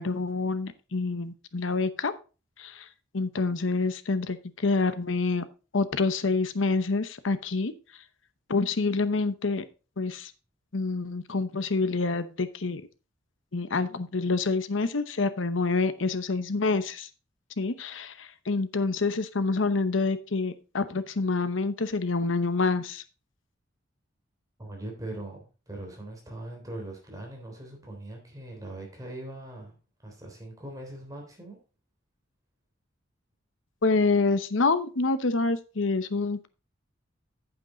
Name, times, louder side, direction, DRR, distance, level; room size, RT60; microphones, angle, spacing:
voice 1, 0.0-2.1 2.6-2.9 3.1-5.4 5.7-8.0 8.5-9.6 10.0-10.3 10.7-12.9 13.5-17.1 17.6-23.0 33.8-36.5, left 3 dB, 85° left, 12 dB, 0.9 m, -27 dB
voice 2, 24.6-25.4 25.7-29.8 30.0-31.6, right 1 dB, 20° right, 1 dB, 3.5 m, -40 dB
8.9 x 7.9 x 3.9 m, 0.33 s
head